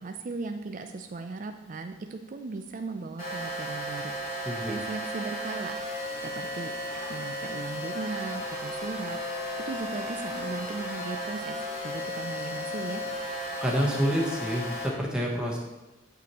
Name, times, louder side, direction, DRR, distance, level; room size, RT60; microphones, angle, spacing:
voice 1, 0.0-4.2 4.7-6.7 7.1-9.2 9.7-13.0, right 3 dB, 40° right, 6 dB, 0.4 m, -37 dB
sound 1, 3.2-14.9, equal, 50° left, 2.5 m, -34 dB
voice 2, 4.4-4.8 13.6-15.6, equal, 5° right, -3 dB, 1.0 m, -28 dB
8.0 x 5.8 x 3.0 m, 1.1 s
head